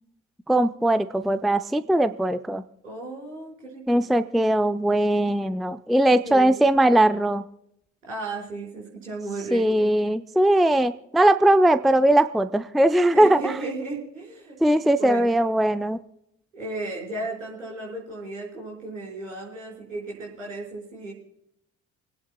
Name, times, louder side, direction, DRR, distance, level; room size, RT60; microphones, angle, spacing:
voice 1, 0.5-2.6 3.9-7.4 9.5-13.5 14.6-16.0, right 1 dB, ahead, 11 dB, 0.5 m, -20 dB
voice 2, 2.8-4.0 6.2-6.6 8.0-9.9 13.1-14.6 15.0-15.3 16.5-21.1, right 2 dB, 85° right, -4 dB, 4.9 m, -34 dB
29.0 x 10.5 x 2.2 m, 0.78 s
figure-of-eight pair, 45°, 37 cm